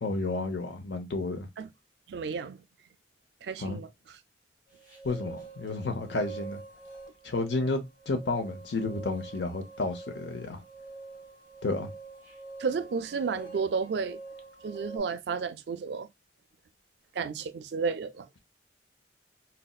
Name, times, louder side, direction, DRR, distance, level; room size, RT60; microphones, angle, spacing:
voice 1, 0.0-1.5 3.6-3.8 5.0-6.6 7.2-10.6 11.6-11.9, left 2 dB, 80° left, 0.7 m, -31 dB
voice 2, 2.1-2.6 3.4-3.9 12.6-14.2 14.6-16.1 17.2-18.3, right 5 dB, 70° right, 0.4 m, -32 dB
sound 1, 4.7-15.0, right 3 dB, 20° left, 1.2 m, -45 dB
4.1 x 2.0 x 2.3 m
head